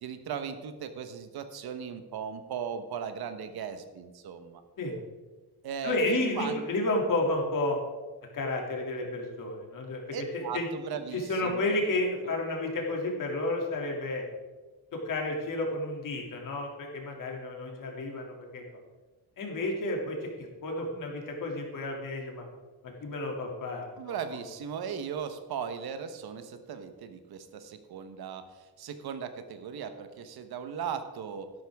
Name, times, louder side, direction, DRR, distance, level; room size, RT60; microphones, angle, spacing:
voice 1, 0.0-4.6 5.6-6.0 6.4-6.7 10.1-12.3 24.0-31.5, right 7 dB, 70° right, 9 dB, 1.2 m, -38 dB
voice 2, 5.8-7.8 8.3-10.0 10.3-10.7 11.1-14.2 14.9-18.6 19.4-22.5 23.0-24.2, left 2 dB, 55° left, 1 dB, 2.6 m, -31 dB
12.5 x 11.5 x 3.6 m, 1.3 s
cardioid pair, 150°, 39 cm